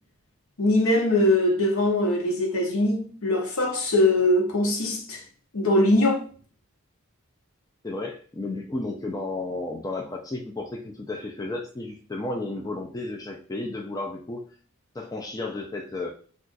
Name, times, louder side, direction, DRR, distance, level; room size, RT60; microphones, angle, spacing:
voice 1, 0.6-5.2 5.5-6.2, left 1 dB, 65° left, 0.8 m, -22 dB
voice 2, 7.8-14.4 14.9-16.1, left 2 dB, 15° left, 0.3 m, -33 dB
2.4 x 2.4 x 3.8 m
head